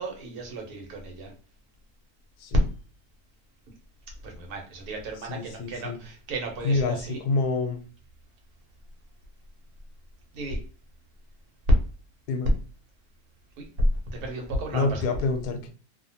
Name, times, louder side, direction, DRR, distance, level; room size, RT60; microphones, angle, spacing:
voice 1, 0.0-1.3 4.2-7.2 10.3-10.6 13.6-13.7 14.2-15.0, right 2 dB, 75° right, 2 dB, 1.3 m, -35 dB
voice 2, 5.2-6.0 6.6-7.8 12.3-12.5 14.7-15.7, left 3 dB, 90° left, 6 dB, 1.2 m, -27 dB
2.8 x 2.1 x 2.7 m, 0.38 s
omnidirectional pair, 1.7 m